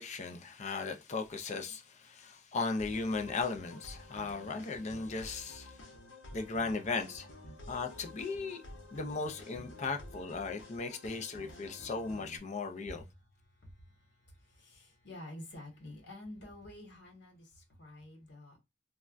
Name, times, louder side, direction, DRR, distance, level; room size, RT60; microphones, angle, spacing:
voice 1, 0.0-5.8 6.3-7.3 7.7-8.6 8.9-13.1, left 4 dB, 40° left, 0.4 m, -37 dB
sound 1, 2.8-12.4, left 1 dB, 85° left, 0.9 m, -51 dB
voice 2, 13.4-18.6, left 1 dB, 65° left, 1.4 m, -50 dB
3.3 x 2.2 x 2.4 m
head